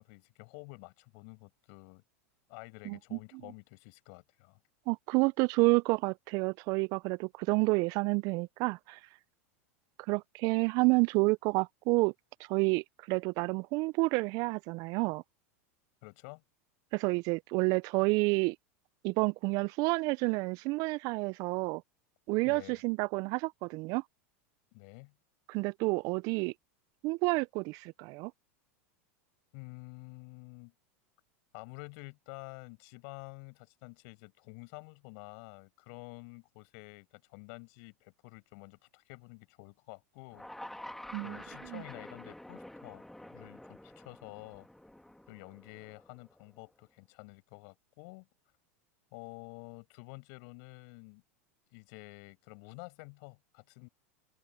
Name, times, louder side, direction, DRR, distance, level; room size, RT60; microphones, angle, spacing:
voice 1, 0.0-2.0 2.5-4.6 16.0-16.4 22.4-22.8 24.7-25.1 29.5-30.7 31.5-40.5 41.2-44.7 45.3-48.3 49.1-51.2 51.7-53.9, left 36 dB, 60° left, 6.0 m, -50 dB
voice 2, 2.9-3.2 4.9-9.0 10.1-12.1 12.5-15.2 16.9-18.6 19.0-21.8 22.3-24.0 25.5-26.5 27.0-28.3 41.1-41.4 41.7-41.8, right 26 dB, 50° right, 0.5 m, -29 dB
sound 1, 40.3-46.6, left 1 dB, 5° left, 2.3 m, -49 dB
open air
hypercardioid pair, 95°, 8 cm